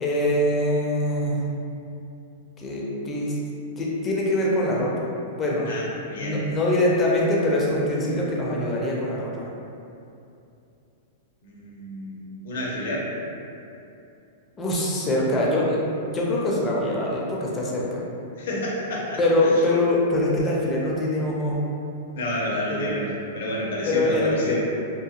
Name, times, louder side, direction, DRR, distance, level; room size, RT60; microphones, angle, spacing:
voice 1, 0.0-1.4 2.6-3.4 3.8-5.1 5.4-5.8 6.2-9.5 14.6-15.8 16.1-18.1 19.2-21.7 22.7-22.9 23.9-24.6, left 1 dB, 20° left, -4 dB, 0.4 m, -23 dB
voice 2, 5.7-6.4 11.4-13.1 18.4-19.5 22.2-24.6, equal, 70° left, -4 dB, 0.7 m, -30 dB
2.7 x 2.3 x 2.4 m, 2.7 s
supercardioid pair, 150°, 0 cm